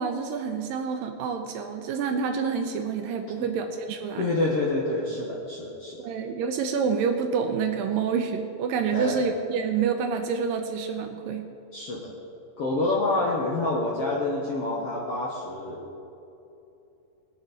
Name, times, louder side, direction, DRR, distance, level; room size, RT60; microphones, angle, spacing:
voice 1, 0.0-4.3 6.0-11.5, right 6 dB, 80° right, 5 dB, 2.2 m, -28 dB
voice 2, 4.2-6.0 8.9-9.2 11.7-12.1 12.6-15.8, left 2 dB, 60° left, -4 dB, 1.6 m, -27 dB
21.0 x 7.5 x 4.2 m, 2.8 s
omnidirectional pair, 4.4 m